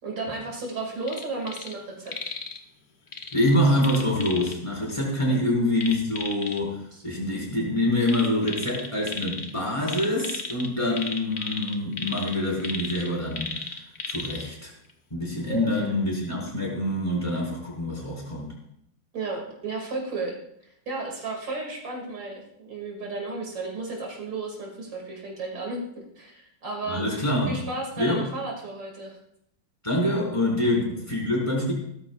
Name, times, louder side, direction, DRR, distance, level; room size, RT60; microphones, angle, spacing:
voice 1, 0.0-2.4 5.2-5.4 6.9-7.0 15.5-15.9 19.1-20.4 20.9-27.0 27.5-29.2, right 3 dB, 70° right, 0 dB, 3.0 m, -34 dB
sound 1, 1.0-1.8 2.1-2.6 3.1-4.6 5.8-6.6 8.0-9.5 9.8-14.5 14.9-15.0, left 4 dB, 35° left, 0.9 m, -35 dB
voice 2, 3.3-13.8 14.0-14.7 15.1-18.5 26.9-27.6 28.0-28.3 29.8-31.7, left 1 dB, 15° left, -3 dB, 4.6 m, -25 dB
18.0 x 13.0 x 2.4 m, 0.73 s
omnidirectional pair, 2.1 m